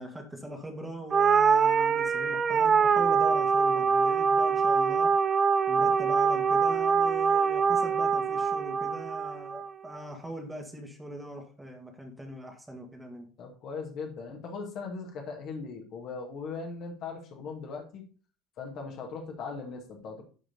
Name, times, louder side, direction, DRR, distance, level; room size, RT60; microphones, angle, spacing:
voice 1, 0.0-5.1 5.7-13.3, right 1 dB, 10° right, 2 dB, 1.9 m, -41 dB
sound 1, 1.1-9.7, right 5 dB, 30° right, 0.6 m, -24 dB
voice 2, 13.4-18.0 18.6-20.2, left 4 dB, 45° left, 2 dB, 2.0 m, -39 dB
11.0 x 5.0 x 3.9 m, 0.38 s
figure-of-eight pair, 70°, 0 cm